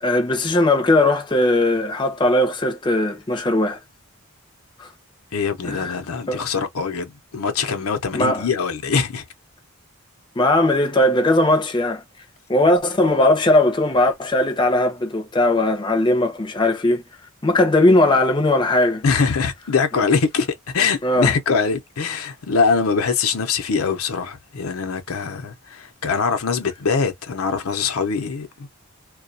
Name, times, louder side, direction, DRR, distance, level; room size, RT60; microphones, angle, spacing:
voice 1, 0.0-3.8 4.8-4.9 5.6-6.0 6.3-6.4 8.1-8.5 10.4-12.0 12.5-17.0 17.4-19.0 21.0-21.3, left 1 dB, 20° left, 0.5 m, -18 dB
voice 2, 5.3-9.2 19.0-28.7, left 5 dB, 85° left, 0.6 m, -23 dB
2.3 x 2.2 x 2.5 m
head